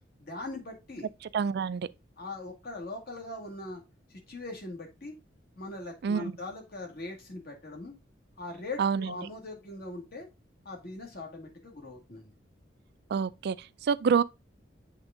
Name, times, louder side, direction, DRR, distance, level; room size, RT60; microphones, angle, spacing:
voice 1, 0.2-1.1 2.2-3.8 4.1-5.1 5.6-7.9 8.4-10.3 10.6-12.3, left 2 dB, 55° left, 1.7 m, -41 dB
voice 2, 1.3-1.9 6.0-6.3 8.8-9.1 13.1-14.2, right 6 dB, 60° right, 0.3 m, -27 dB
7.9 x 3.5 x 3.6 m
head